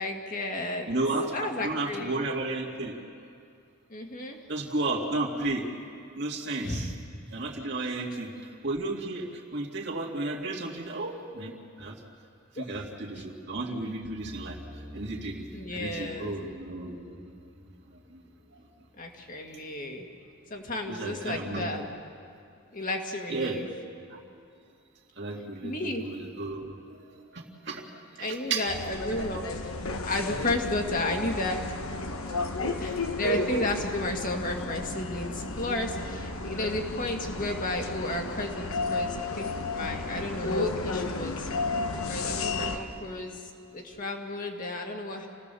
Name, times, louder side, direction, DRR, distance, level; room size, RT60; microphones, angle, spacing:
voice 1, 0.0-0.9 1.3-2.2 3.9-4.4 6.6-6.9 7.7-7.8 12.6-12.7 13.2-13.3 15.5-16.4 19.0-20.1 20.5-21.8 22.7-23.7 25.6-26.1 28.2-29.5 30.0-31.6 32.8-41.5 42.1-43.4 43.7-45.3, left 2 dB, 40° left, 2 dB, 2.0 m, -33 dB
voice 2, 0.9-3.0 4.5-5.7 6.1-6.9 7.3-12.0 12.5-17.6 17.9-18.2 18.5-18.6 19.5-20.0 20.9-21.9 23.3-23.6 24.1-24.2 25.2-27.9 28.1-28.7, right 2 dB, 50° right, -1 dB, 2.4 m, -34 dB
sound 1, 14.0-19.2, equal, 25° right, 2.1 m, -48 dB
sound 2, 28.7-42.8, left 3 dB, 85° left, 1.3 m, -33 dB
28.5 x 17.5 x 7.0 m, 2.4 s
head